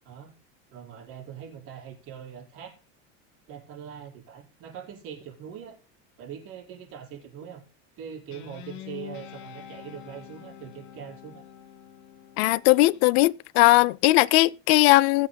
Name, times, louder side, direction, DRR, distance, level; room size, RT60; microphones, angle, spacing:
voice 1, 0.7-2.8 3.5-5.8 6.2-7.6 8.0-11.4, right 8 dB, 45° right, 5.2 m, -42 dB
Guitar, 8.3-13.0, left 10 dB, 40° left, 2.7 m, -45 dB
voice 2, 12.4-15.3, left 19 dB, 80° left, 0.5 m, -19 dB
22.5 x 7.5 x 2.2 m
cardioid pair, 170°, 31 cm